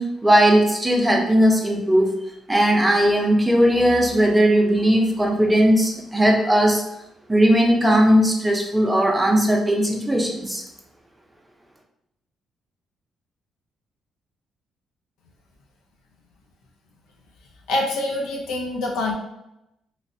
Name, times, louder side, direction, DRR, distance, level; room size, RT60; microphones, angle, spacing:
voice 1, 0.0-2.1 2.5-6.8 7.3-10.6, equal, 10° right, 0 dB, 0.6 m, -18 dB
voice 2, 17.7-19.1, left 2 dB, 90° left, 0 dB, 0.6 m, -25 dB
3.2 x 2.5 x 2.6 m, 0.85 s
cardioid pair, 90°, 0 cm